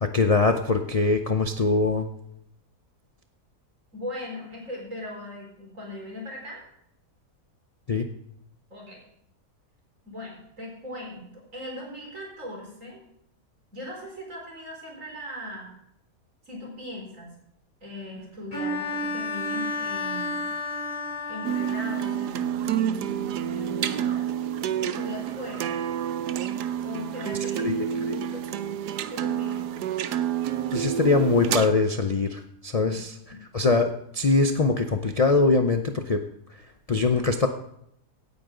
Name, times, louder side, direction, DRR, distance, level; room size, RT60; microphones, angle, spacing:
voice 1, 0.0-2.1 7.9-8.1 27.6-27.8 28.1-28.4 30.7-33.1 33.5-36.2 36.9-37.5, left 3 dB, 65° left, 6 dB, 0.3 m, -22 dB
voice 2, 3.9-6.6 8.7-9.0 10.0-13.0 13.7-15.7 16.4-17.3 17.8-20.5 21.3-24.2 24.8-25.8 26.8-28.6 29.1-29.8 32.8-33.0 33.3-33.4, left 1 dB, 50° right, -1 dB, 4.5 m, -39 dB
Bowed string instrument, 18.5-22.2, left 2 dB, 20° left, 2.7 m, -31 dB
sound 1, 21.4-31.7, right 9 dB, 80° right, 1.3 m, -29 dB
17.0 x 9.5 x 3.8 m, 0.74 s
omnidirectional pair, 1.7 m